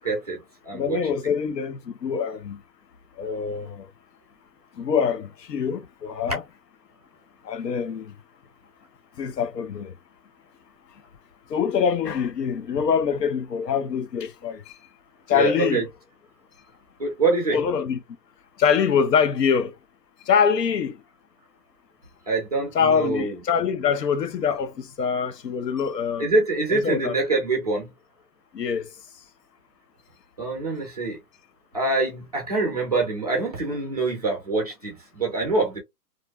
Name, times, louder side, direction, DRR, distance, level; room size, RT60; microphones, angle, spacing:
voice 1, 0.0-1.0 15.3-15.8 17.0-17.6 22.3-23.4 26.2-27.9 30.4-31.2 31.7-35.8, right 3 dB, 25° right, 0.5 m, -25 dB
voice 2, 0.7-2.6 3.2-3.9 4.8-6.4 7.4-8.1 9.2-9.9 11.5-14.7 15.3-15.9 17.5-18.0 18.6-19.7 20.3-20.9 22.7-26.3 26.7-27.1 28.5-28.9, left 7 dB, 85° left, 0.7 m, -24 dB
2.5 x 2.2 x 2.3 m
hypercardioid pair, 155°, 48 cm